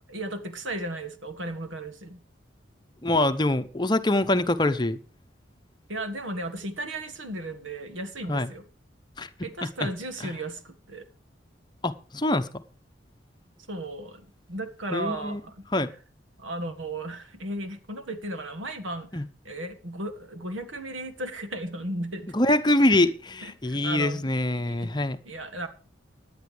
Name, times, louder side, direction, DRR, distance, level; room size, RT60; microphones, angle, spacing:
voice 1, 0.1-2.2 5.9-8.6 9.4-11.0 13.7-15.7 16.4-22.6 22.9-23.0 23.4-25.0 25.3-25.7, right 1 dB, 85° right, 1.7 m, -35 dB
voice 2, 3.0-5.0 8.3-8.5 9.2-9.3 9.6-9.7 10.2-10.3 11.8-12.6 14.9-15.4 15.7-15.9 19.1-19.3 22.3-25.2, left 1 dB, 20° left, 0.8 m, -24 dB
18.0 x 10.5 x 3.4 m
head